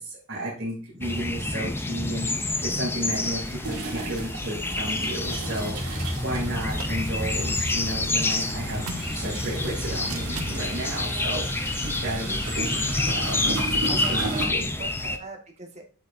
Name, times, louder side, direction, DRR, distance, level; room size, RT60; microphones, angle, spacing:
voice 1, 0.0-8.8 9.1-11.4 11.7-14.7, right 1 dB, 50° right, -7 dB, 3.2 m, -33 dB
sound 1, 1.0-15.2, left 2 dB, 10° left, 0.4 m, -28 dB
sound 2, 1.4-1.6 2.9-14.5, right 3 dB, 85° right, 2.4 m, -36 dB
sound 3, 6.5-12.4, right 3 dB, 65° right, 0.8 m, -41 dB
voice 2, 11.1-11.4 13.9-15.8, right 3 dB, 30° right, 3 dB, 1.4 m, -41 dB
8.3 x 6.5 x 2.6 m, 0.37 s
head